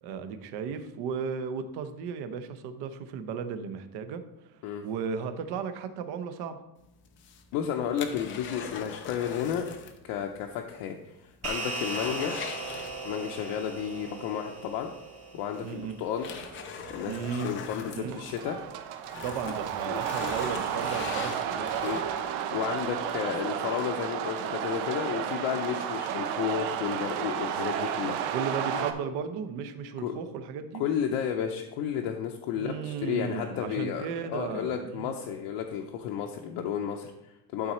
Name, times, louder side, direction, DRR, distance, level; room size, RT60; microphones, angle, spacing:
voice 1, 0.0-6.6 15.6-16.0 17.0-17.5 17.9-18.2 19.2-21.8 28.3-30.8 32.5-35.1, right 6 dB, 50° right, 9 dB, 0.8 m, -35 dB
sound 1, 7.0-10.0 10.3-10.4 10.9-11.0 11.3-13.4 14.8-14.9 15.5-18.6 19.0-22.3 22.8-22.9, left 6 dB, 25° left, 0.3 m, -41 dB
voice 2, 7.5-9.7 10.0-12.4 13.0-14.9 15.3-16.3 16.9-18.6 19.9-20.0 21.8-22.0 22.5-28.2 28.8-28.9 30.0-30.1 30.8-37.7, left 9 dB, 55° left, 2 dB, 0.7 m, -32 dB
sound 2, 11.4-16.1, right 3 dB, 30° right, 1.2 m, -38 dB
sound 3, 16.2-28.9, right 9 dB, 90° right, 1.0 m, -33 dB
11.5 x 4.1 x 4.3 m, 0.93 s
cardioid pair, 175°, 50 cm